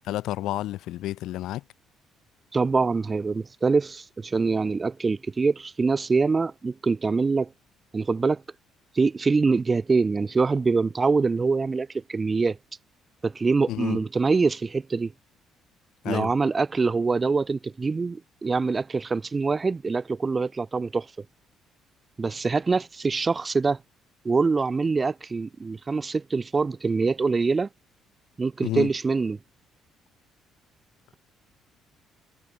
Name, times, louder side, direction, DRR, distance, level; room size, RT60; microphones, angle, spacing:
voice 1, 0.0-1.6 13.7-14.0 16.0-16.3 28.6-28.9, left 14 dB, 75° left, 3.3 m, -30 dB
voice 2, 2.5-7.5 7.9-8.4 8.9-12.6 13.2-15.1 16.1-21.1 22.2-23.8 24.2-27.7 28.4-29.4, right 4 dB, 20° right, 4.0 m, -24 dB
cardioid pair, 150°, 0 cm